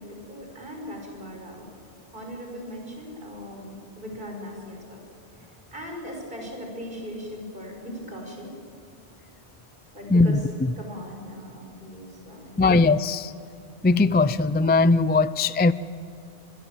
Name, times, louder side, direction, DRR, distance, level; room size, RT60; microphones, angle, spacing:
voice 1, 0.0-1.7 2.1-5.0 5.4-8.6 9.9-10.4 10.8-12.8, equal, 50° right, 1 dB, 6.3 m, -39 dB
voice 2, 10.1-10.7 12.6-13.3 13.8-15.7, left 3 dB, 15° left, 15 dB, 0.3 m, -20 dB
27.0 x 22.0 x 7.5 m, 2.5 s
omnidirectional pair, 1.2 m